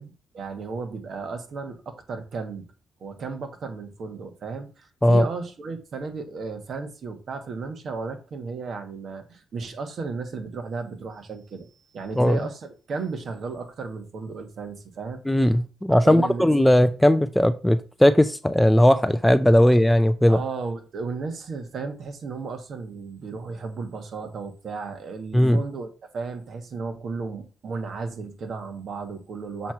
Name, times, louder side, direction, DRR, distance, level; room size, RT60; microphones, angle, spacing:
voice 1, 0.0-2.7 3.0-15.2 16.0-16.7 20.3-29.7, right 4 dB, 55° right, 1.4 m, -34 dB
voice 2, 15.3-20.4 25.3-25.6, left 1 dB, 5° left, 0.4 m, -18 dB
7.1 x 3.1 x 5.8 m
cardioid pair, 90°, 0 cm